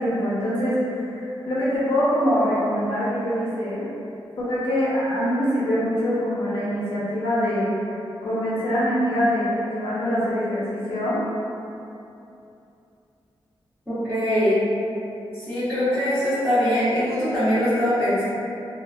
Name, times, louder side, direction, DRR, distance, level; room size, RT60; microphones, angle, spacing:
voice 1, 0.0-3.9 4.4-7.7 8.2-11.2, equal, 75° left, -8 dB, 0.6 m, -24 dB
voice 2, 13.9-14.6 15.3-18.2, equal, 5° right, -18 dB, 1.0 m, -22 dB
2.8 x 2.0 x 2.4 m, 2.7 s
wide cardioid pair, 85°, 9 cm